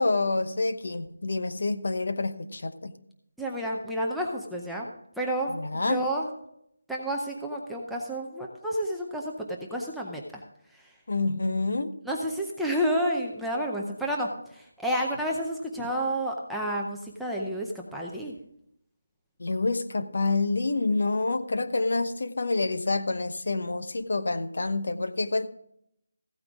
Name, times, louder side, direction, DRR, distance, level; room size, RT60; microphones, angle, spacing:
voice 1, 0.0-2.9 5.5-6.0 11.1-11.9 15.8-15.9 19.4-25.5, left 3 dB, 55° left, 10 dB, 1.0 m, -27 dB
voice 2, 3.4-6.3 6.9-10.4 10.7-10.9 12.1-18.4, equal, ahead, -4 dB, 0.6 m, -30 dB
15.5 x 8.9 x 3.6 m, 0.74 s
figure-of-eight pair, 180°, 0 cm